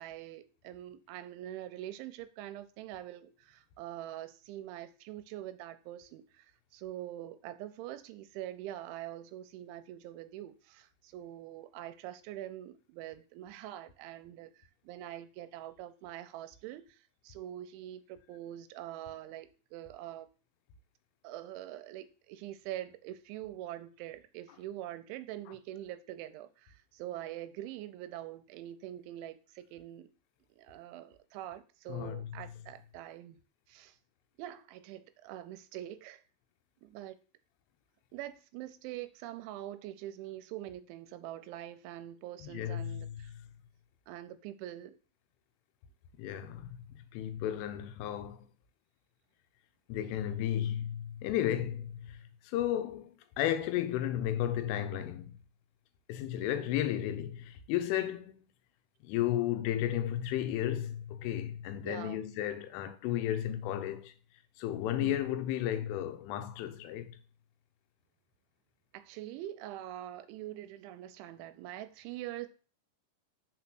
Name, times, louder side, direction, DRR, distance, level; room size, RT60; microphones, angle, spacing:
voice 1, 0.0-20.3 21.2-30.1 30.5-33.4 33.7-34.0 34.4-36.2 36.8-37.2 38.1-43.3 44.1-45.0 56.4-56.9 61.8-62.2 65.0-65.2 68.9-72.5, right 13 dB, 80° right, 2.9 m, -44 dB
voice 2, 31.9-32.3 42.4-43.2 46.2-48.5 49.9-52.2 52.4-55.4 56.1-58.3 59.0-64.1 64.6-67.2, left 11 dB, 90° left, 3.3 m, -33 dB
6.8 x 4.3 x 5.9 m
omnidirectional pair, 5.5 m